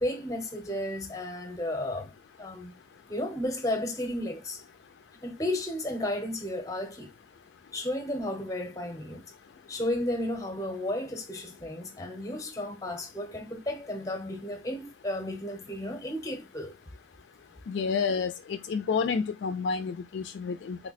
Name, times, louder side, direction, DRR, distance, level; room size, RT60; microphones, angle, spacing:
voice 1, 0.0-2.7 3.1-4.6 5.2-7.1 7.7-9.2 9.7-16.7, left 1 dB, 15° left, 0.7 m, -33 dB
voice 2, 17.7-20.8, left 5 dB, 60° left, 0.3 m, -29 dB
3.2 x 2.1 x 4.0 m
head